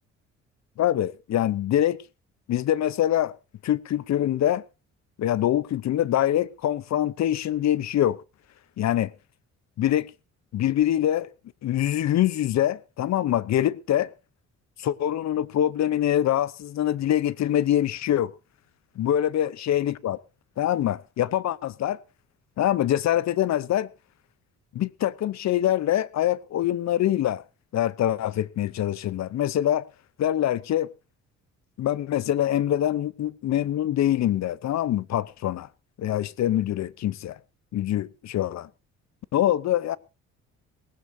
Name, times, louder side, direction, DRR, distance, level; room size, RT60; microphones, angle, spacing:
voice 1, 0.8-2.0 2.5-3.4 3.6-4.6 5.2-8.2 8.8-9.1 9.8-10.1 10.5-11.3 11.6-14.1 14.8-18.3 19.0-20.2 20.6-22.0 22.6-23.9 24.7-27.4 27.7-29.9 30.2-30.9 31.8-35.7 36.0-37.4 37.7-38.7 39.3-40.0, left 12 dB, 65° left, 0.8 m, -24 dB
18.5 x 16.5 x 2.7 m
cardioid pair, 90°, 30 cm